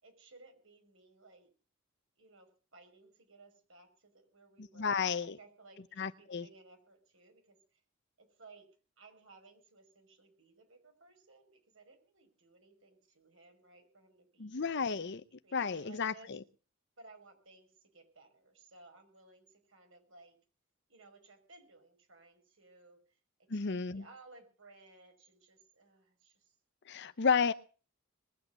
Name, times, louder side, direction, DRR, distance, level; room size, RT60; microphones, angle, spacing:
voice 1, 0.0-1.5 2.2-7.8 8.2-8.7 9.0-14.7 15.4-16.4 17.0-20.4 20.9-23.2 23.5-26.5, right 3 dB, 65° right, 5.7 m, -59 dB
voice 2, 4.6-5.4 6.0-6.5 14.4-15.2 15.5-16.4 23.5-24.0 26.9-27.5, left 5 dB, 55° left, 0.7 m, -32 dB
21.0 x 8.6 x 8.0 m
head